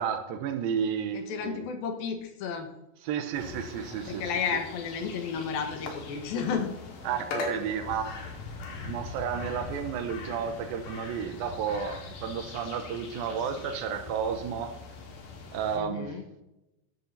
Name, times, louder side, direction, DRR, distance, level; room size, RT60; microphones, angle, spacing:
voice 1, 0.0-1.6 3.1-4.2 7.1-8.2 8.9-14.7 15.5-16.2, right 7 dB, 90° right, 8 dB, 2.7 m, -32 dB
voice 2, 1.1-2.7 4.1-6.7 15.7-16.2, left 6 dB, 85° left, 5 dB, 3.2 m, -32 dB
sound 1, 3.3-15.8, left 3 dB, 65° left, 3.2 m, -41 dB
14.0 x 11.5 x 2.8 m, 0.93 s
omnidirectional pair, 4.1 m